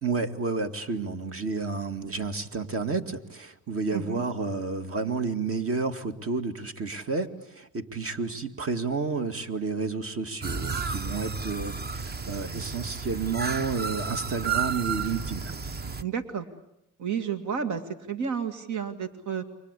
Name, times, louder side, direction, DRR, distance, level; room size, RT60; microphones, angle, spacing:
voice 1, 0.0-15.5, right 4 dB, 50° right, 7 dB, 2.3 m, -31 dB
sound 1, 10.4-16.0, right 5 dB, 35° right, 1.0 m, -32 dB
voice 2, 16.0-16.5 17.0-17.8 18.1-19.4, right 7 dB, 75° right, 7 dB, 2.2 m, -31 dB
29.5 x 24.0 x 8.4 m, 0.84 s
cardioid pair, 90°, 30 cm